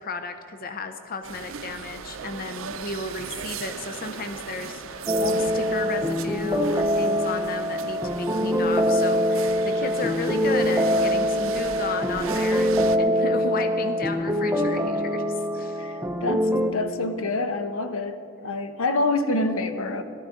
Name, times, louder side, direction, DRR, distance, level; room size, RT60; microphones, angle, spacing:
voice 1, 0.0-15.8, left 3 dB, 45° left, 7 dB, 0.6 m, -33 dB
sound 1, 1.2-13.0, right 6 dB, 70° right, 0.5 m, -37 dB
sound 2, 5.1-16.7, equal, 10° right, 0.5 m, -24 dB
voice 2, 15.8-20.0, left 2 dB, 80° left, 8 dB, 0.9 m, -27 dB
18.0 x 12.5 x 3.8 m, 2.7 s
head